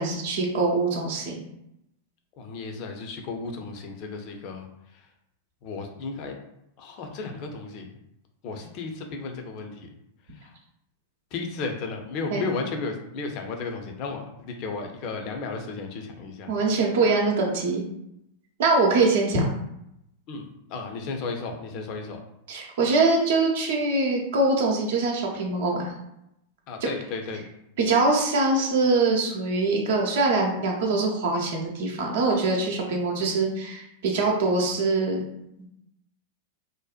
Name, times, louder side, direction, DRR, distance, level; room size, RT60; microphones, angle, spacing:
voice 1, 0.0-1.4 12.3-12.4 16.5-17.8 18.6-19.5 22.5-25.8 27.8-35.2, right 3 dB, 60° right, -1 dB, 0.6 m, -23 dB
voice 2, 2.4-4.7 4.9-5.1 5.6-6.4 6.8-7.9 8.4-9.9 10.3-10.5 11.3-16.5 20.3-22.2 26.7-27.4, left 4 dB, 45° left, 4 dB, 0.5 m, -34 dB
2.6 x 2.1 x 2.4 m, 0.81 s
figure-of-eight pair, 95°, 0 cm